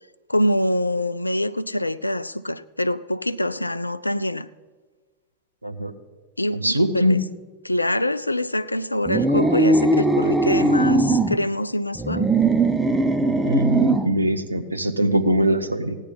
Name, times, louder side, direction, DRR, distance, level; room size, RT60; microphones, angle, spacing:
voice 1, 0.3-4.5 6.4-7.2 7.6-12.3, left 1 dB, 85° left, 15 dB, 0.4 m, -25 dB
voice 2, 6.5-7.2 13.4-16.0, right 1 dB, 85° right, 8 dB, 0.9 m, -22 dB
sound 1, 9.1-11.4 12.0-14.2, right 2 dB, 10° right, 0.7 m, -19 dB
16.5 x 9.9 x 5.6 m, 1.4 s
figure-of-eight pair, 90°, 0 cm